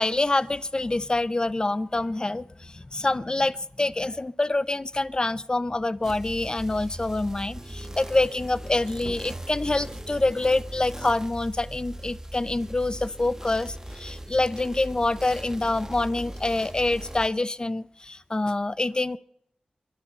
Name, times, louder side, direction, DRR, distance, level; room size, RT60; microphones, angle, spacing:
voice 1, 0.0-19.2, left 2 dB, 30° left, 15 dB, 0.7 m, -26 dB
sound 1, 6.0-17.3, right 1 dB, 20° right, 1.5 m, -39 dB
sound 2, 9.1-14.5, right 3 dB, 70° right, 2.8 m, -49 dB
28.0 x 11.5 x 4.1 m, 0.72 s
cardioid pair, 60°, 3 cm